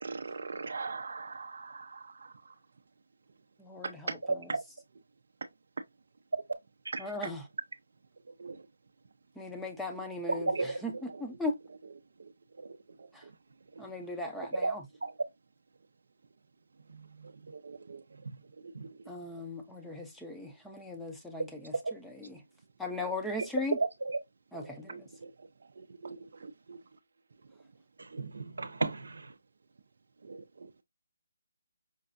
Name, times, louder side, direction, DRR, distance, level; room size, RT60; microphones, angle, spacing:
voice 1, 0.0-2.0 8.4-8.6 10.6-10.7 17.6-18.0 24.9-25.0 26.0-26.2 26.7-26.8 28.1-28.2 30.3-30.4, right 4 dB, 60° right, 0.4 m, -40 dB
voice 2, 3.6-4.6 7.0-7.4 9.4-11.5 13.8-14.8 19.1-22.4 22.8-23.8 24.5-25.0, left 2 dB, 5° left, 0.5 m, -38 dB
voice 3, 10.3-10.8 14.5-14.7 15.0-15.1 23.8-24.2 28.2-29.0, right 3 dB, 90° right, 0.7 m, -31 dB
5.1 x 2.3 x 2.5 m
hypercardioid pair, 165°, 0 cm